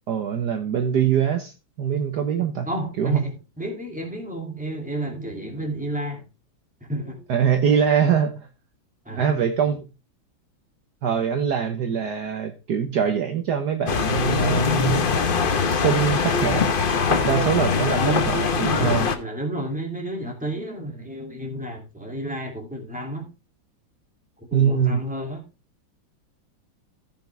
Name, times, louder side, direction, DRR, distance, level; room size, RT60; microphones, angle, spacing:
voice 1, 0.1-1.5 1.8-2.7 3.0-3.2 7.3-8.5 9.2-9.9 11.0-15.0 15.7-16.7 17.1-19.1 24.5-25.0, right 7 dB, 60° right, 1.3 m, -23 dB
voice 2, 2.7-6.2 6.8-7.2 9.1-9.8 17.7-18.9 19.2-23.3 24.4-25.5, right 1 dB, 5° right, 2.2 m, -31 dB
sound 1, 13.9-19.2, left 5 dB, 50° left, 0.6 m, -22 dB
14.5 x 6.0 x 3.2 m
omnidirectional pair, 2.1 m